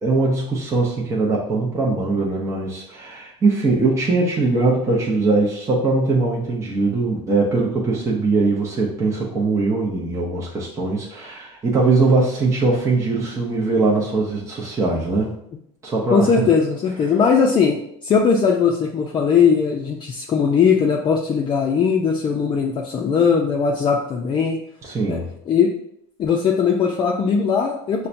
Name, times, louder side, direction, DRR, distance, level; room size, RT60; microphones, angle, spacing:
voice 1, 0.0-15.3 15.8-16.3 24.8-25.3, right 3 dB, 20° right, -4 dB, 0.7 m, -21 dB
voice 2, 16.1-24.6 25.1-25.2 25.5-25.7 26.2-28.1, left 6 dB, 35° left, -1 dB, 0.4 m, -19 dB
5.5 x 2.2 x 2.6 m, 0.74 s
supercardioid pair, 115°, 14 cm